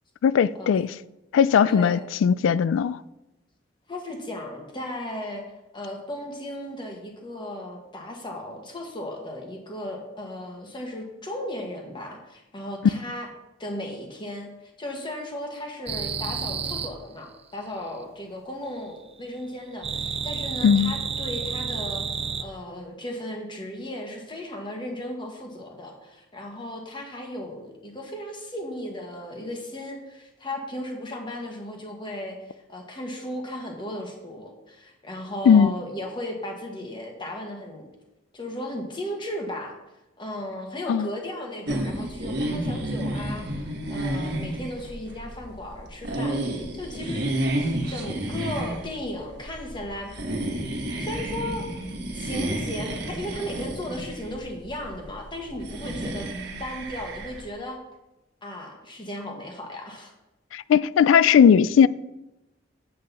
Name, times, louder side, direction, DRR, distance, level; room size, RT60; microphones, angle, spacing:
voice 1, 0.2-0.9 1.3-3.0 20.6-21.0 35.5-35.7 40.9-41.1 60.5-61.9, left 7 dB, 85° left, 0.3 m, -18 dB
voice 2, 1.7-2.0 3.9-5.5 5.7-13.3 13.6-22.0 22.4-37.9 38.3-39.7 40.2-47.2 47.9-50.1 51.0-51.7 52.1-56.3 56.6-57.8 58.4-60.1, left 1 dB, 25° left, 1.5 m, -36 dB
sound 1, 15.9-16.9 19.8-22.4, right 6 dB, 30° right, 0.6 m, -30 dB
sound 2, 41.7-57.4, right 1 dB, 60° right, 1.4 m, -31 dB
8.0 x 7.6 x 4.1 m
head